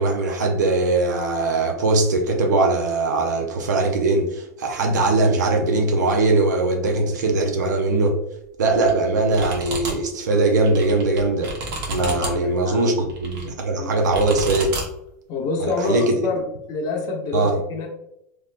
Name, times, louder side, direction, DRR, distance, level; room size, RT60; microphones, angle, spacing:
voice 1, 0.0-8.2 8.6-11.5 11.9-14.7 15.6-16.2 17.3-17.6, right 2 dB, 85° right, 3 dB, 0.5 m, -20 dB
sound 1, 8.7-8.9 9.3-9.9 10.5-12.3 13.1-13.5 14.1-14.8, right 2 dB, 50° right, 1.0 m, -30 dB
voice 2, 12.0-12.8 13.8-14.0 15.3-16.4 16.7-17.9, left 3 dB, 45° left, 0 dB, 0.7 m, -27 dB
3.2 x 2.9 x 2.3 m, 0.80 s
hypercardioid pair, 110°, 9 cm